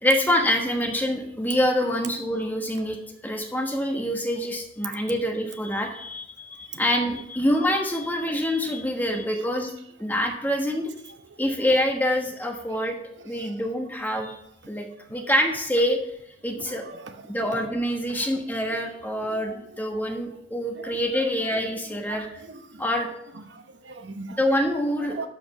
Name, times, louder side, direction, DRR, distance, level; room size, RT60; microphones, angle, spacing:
voice 1, 0.0-3.0 3.2-9.7 10.0-10.9 11.4-13.0 13.2-16.0 16.4-16.8 17.3-22.3 22.8-23.1 24.4-25.3, equal, 10° left, 1.2 m, -26 dB
voice 2, 16.5-17.2 17.5-17.6 19.2-19.4 20.8-21.0 22.1-22.3 22.7-22.8 23.5-24.4 25.1-25.3, right 3 dB, 70° right, 0.9 m, -39 dB
12.0 x 5.2 x 5.5 m
head